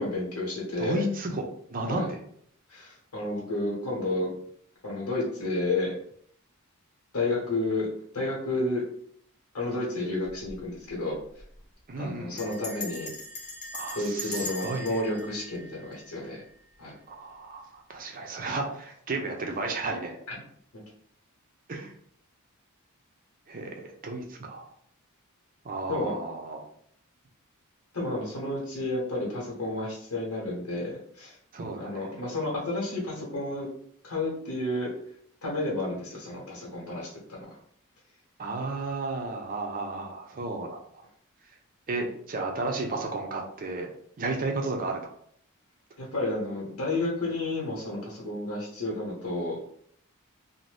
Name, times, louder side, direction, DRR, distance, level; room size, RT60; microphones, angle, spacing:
voice 1, 0.0-1.0 1.9-2.1 2.7-4.3 4.8-5.9 7.1-7.9 8.1-8.8 9.5-11.2 12.0-13.1 13.9-16.4 16.8-16.9 25.9-26.1 27.9-31.3 31.8-33.7 34.0-34.9 35.4-37.6 46.0-49.6, left 2 dB, 70° left, -4 dB, 1.1 m, -31 dB
voice 2, 0.8-2.2 11.9-12.5 13.7-15.0 17.1-20.2 21.7-21.9 23.5-24.7 25.6-26.7 31.5-32.1 38.4-41.0 41.9-43.9 44.2-45.1, right 2 dB, 40° right, 2 dB, 0.5 m, -33 dB
Bell, 10.2-10.6 10.9-11.0 11.2-11.6 12.4-16.5, left 2 dB, 35° left, 0.7 m, -40 dB
2.6 x 2.1 x 3.3 m, 0.65 s
head